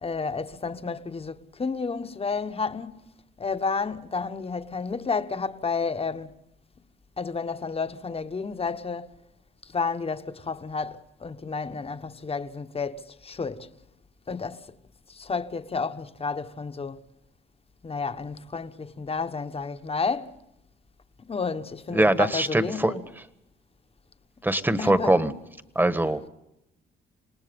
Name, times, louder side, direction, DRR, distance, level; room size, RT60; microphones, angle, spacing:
voice 1, 0.0-3.0 3.4-6.4 7.2-9.1 9.6-13.7 14.3-14.7 15.1-17.0 17.8-20.4 21.3-23.0 24.8-25.2, left 4 dB, 30° left, 1.3 m, -31 dB
voice 2, 21.9-22.9 24.4-25.3 25.7-26.3, right 1 dB, 10° right, 1.5 m, -22 dB
27.5 x 19.0 x 5.4 m
cardioid pair, 90°, 20 cm